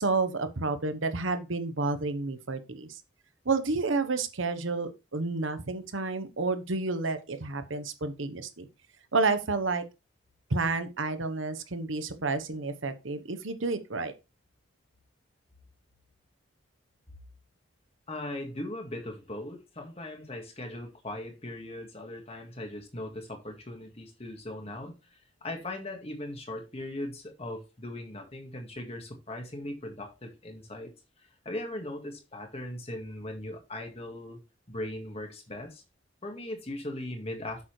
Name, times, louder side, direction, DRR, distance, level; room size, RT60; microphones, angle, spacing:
voice 1, 0.0-3.0 3.4-8.7 9.1-9.8 10.5-14.1, right 3 dB, 80° right, 1.1 m, -30 dB
voice 2, 18.1-30.9 31.2-34.4 34.7-35.8 36.2-37.6, left 1 dB, 30° left, 1.8 m, -39 dB
8.2 x 6.8 x 3.2 m
head